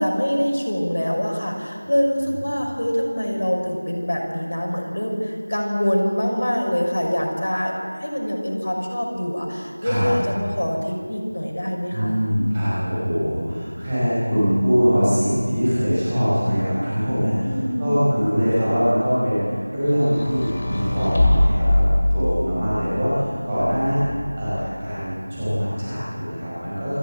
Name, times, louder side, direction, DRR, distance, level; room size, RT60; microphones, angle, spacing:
voice 1, 0.0-12.2 17.4-18.1, equal, 55° left, 0 dB, 5.9 m, -24 dB
voice 2, 11.9-17.5 17.8-21.8 22.1-24.0 24.4-27.0, equal, 10° right, -11 dB, 4.9 m, -22 dB
sound 1, 20.0-22.7 23.6-24.5, left 1 dB, 25° left, 2.4 m, -22 dB
28.0 x 13.5 x 8.0 m, 2.1 s
figure-of-eight pair, 180°, 0 cm